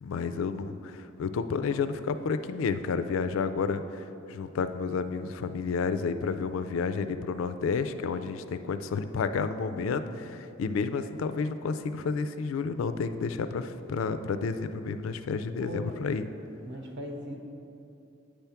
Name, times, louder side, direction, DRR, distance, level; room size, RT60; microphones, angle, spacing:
voice 1, 0.0-10.3 10.6-16.2, left 5 dB, 75° left, 10 dB, 0.3 m, -31 dB
voice 2, 9.9-10.3 15.6-16.0 16.6-17.4, equal, 60° right, 2 dB, 0.8 m, -39 dB
8.6 x 3.4 x 5.7 m, 2.9 s
head